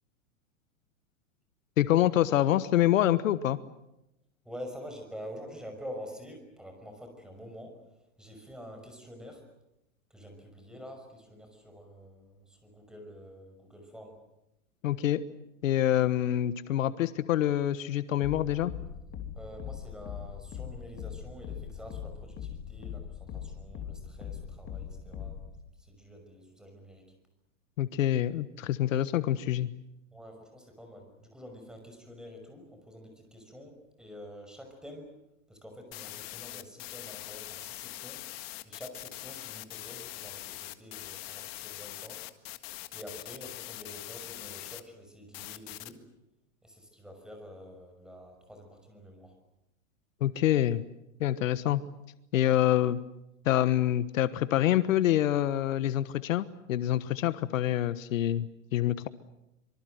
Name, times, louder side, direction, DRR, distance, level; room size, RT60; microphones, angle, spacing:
voice 1, 1.8-3.6 14.8-15.2 15.6-18.7 27.8-29.7 50.2-50.8 51.2-51.8 52.3-53.0 53.4-59.1, left 12 dB, 70° left, 13 dB, 1.3 m, -26 dB
voice 2, 4.4-7.8 8.2-9.4 10.1-14.1 19.4-25.4 25.8-27.1 30.1-35.1 35.5-38.2 38.6-42.2 42.9-46.0 46.6-49.3, equal, ahead, 5 dB, 5.9 m, -47 dB
sound 1, 18.2-25.6, left 8 dB, 25° left, 3.1 m, -41 dB
sound 2, 35.9-44.8 45.3-45.9, left 18 dB, 50° left, 1.7 m, -42 dB
25.5 x 24.0 x 7.9 m, 0.89 s
supercardioid pair, 145°, 40 cm